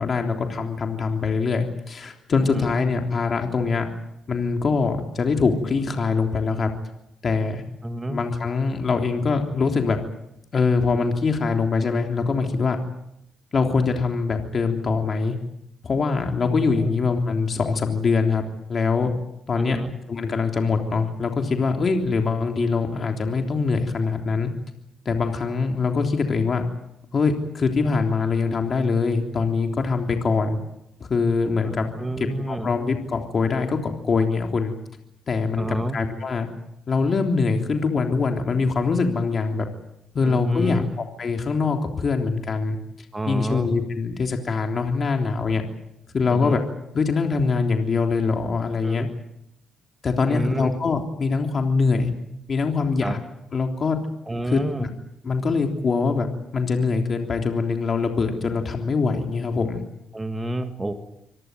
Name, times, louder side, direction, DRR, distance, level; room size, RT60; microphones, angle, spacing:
voice 1, 0.0-3.9 4.3-6.7 7.2-7.6 8.1-10.0 10.5-12.8 13.5-15.3 15.8-18.4 18.7-19.1 19.5-19.8 20.1-24.5 25.0-26.6 27.1-30.6 31.0-32.0 32.5-34.7 35.3-36.5 36.9-39.7 40.1-42.8 43.3-45.6 46.1-46.6 46.9-49.0 50.0-52.1 52.5-53.2 53.5-54.0 54.5-54.9 55.2-56.3 56.5-59.8, left 4 dB, 45° left, 4 dB, 3.4 m, -23 dB
voice 2, 2.4-2.7 7.8-8.2 16.5-17.1 19.6-20.0 31.6-32.7 35.6-36.0 40.2-41.0 43.1-43.7 46.3-46.6 48.8-49.1 50.3-50.7 53.0-53.2 54.3-54.9 60.1-60.9, right 1 dB, 15° right, 6 dB, 2.1 m, -30 dB
25.5 x 18.0 x 9.3 m, 0.83 s
cardioid pair, 90°, 0 cm